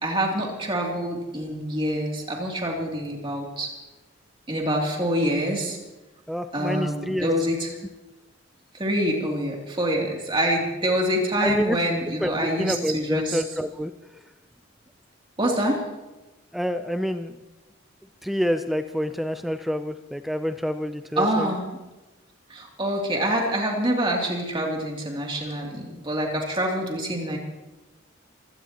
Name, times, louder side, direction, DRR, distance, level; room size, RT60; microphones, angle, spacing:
voice 1, 0.0-3.7 4.5-5.8 6.5-7.7 8.7-13.4 15.4-15.8 21.2-21.8 22.5-27.4, right 1 dB, 25° right, -1 dB, 2.9 m, -26 dB
voice 2, 6.3-7.3 11.4-11.8 12.2-12.3 12.6-13.9 16.5-17.3 18.2-21.5, equal, ahead, 9 dB, 0.4 m, -27 dB
25.0 x 17.0 x 3.0 m, 1.1 s
head